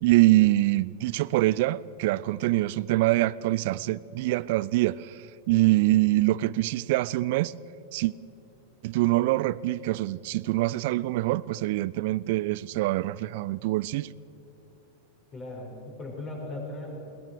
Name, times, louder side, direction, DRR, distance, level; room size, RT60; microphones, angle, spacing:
voice 1, 0.0-7.5 7.9-8.1 8.8-14.1, right 17 dB, 50° right, 0.4 m, -24 dB
voice 2, 15.3-17.0, left 2 dB, 25° left, 6.4 m, -37 dB
21.5 x 20.5 x 6.7 m
figure-of-eight pair, 90°, 0 cm